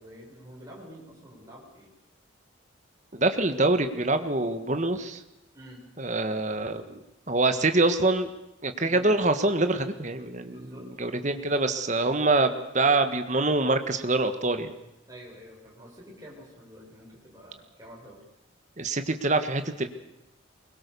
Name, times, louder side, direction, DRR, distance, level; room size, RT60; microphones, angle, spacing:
voice 1, 0.0-1.9 5.5-5.8 8.8-9.0 10.5-10.9 15.1-18.2, equal, 15° right, -3 dB, 6.6 m, -48 dB
voice 2, 3.1-5.2 6.0-8.3 8.6-10.6 11.0-14.7 18.8-19.9, right 2 dB, 35° right, 8 dB, 1.6 m, -25 dB
24.0 x 22.0 x 7.0 m, 0.88 s
head